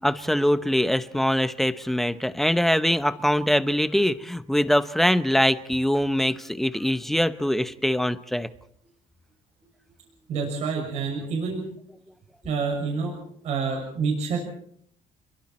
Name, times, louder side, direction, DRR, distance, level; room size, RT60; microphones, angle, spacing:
voice 1, 0.0-8.5, equal, ahead, 12 dB, 0.9 m, -23 dB
voice 2, 10.3-11.6 12.4-14.4, right 5 dB, 60° right, 1 dB, 6.2 m, -28 dB
30.0 x 23.0 x 4.4 m, 0.66 s
cardioid pair, 150°, 13 cm